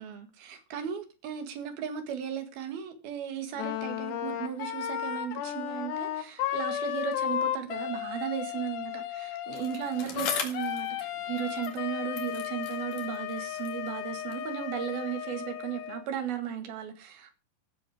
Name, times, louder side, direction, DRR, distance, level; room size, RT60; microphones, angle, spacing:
voice 1, 0.0-17.3, right 9 dB, 65° right, 3.7 m, -36 dB
Wind instrument woodwind instrument, 3.6-16.0, left 11 dB, 80° left, 3.3 m, -34 dB
Bicycle, 9.5-11.9 12.1-14.5 15.3-15.4, left 6 dB, 55° left, 3.2 m, -39 dB
15.0 x 7.6 x 5.0 m
omnidirectional pair, 4.9 m